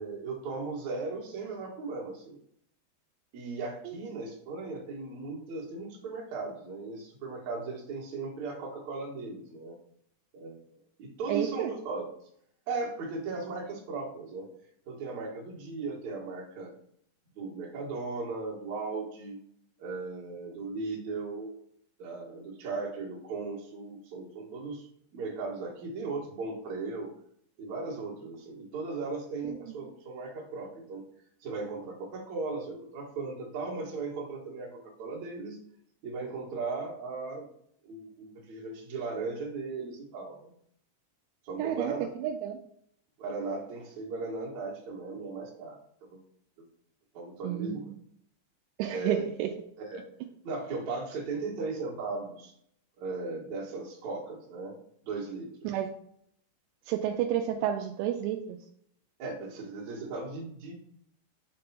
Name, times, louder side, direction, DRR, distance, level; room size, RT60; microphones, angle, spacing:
voice 1, 0.0-2.4 3.3-9.8 10.3-10.7 11.0-12.0 12.7-14.5 14.9-16.7 17.4-19.4 19.8-21.5 22.0-24.9 25.1-27.1 27.6-31.1 31.4-35.6 36.0-37.5 37.8-40.5 41.4-42.1 43.2-46.2 47.1-47.9 48.9-49.2 49.8-50.0 50.4-52.5 53.0-54.8 55.0-55.5 59.2-60.7, right 3 dB, 60° right, -2 dB, 2.2 m, -37 dB
voice 2, 11.3-11.7 29.5-29.7 41.6-42.6 47.4-48.0 48.8-49.5 55.6-55.9 56.9-58.6, right 10 dB, 80° right, 4 dB, 2.5 m, -31 dB
6.7 x 3.5 x 5.6 m, 0.69 s
omnidirectional pair, 4.9 m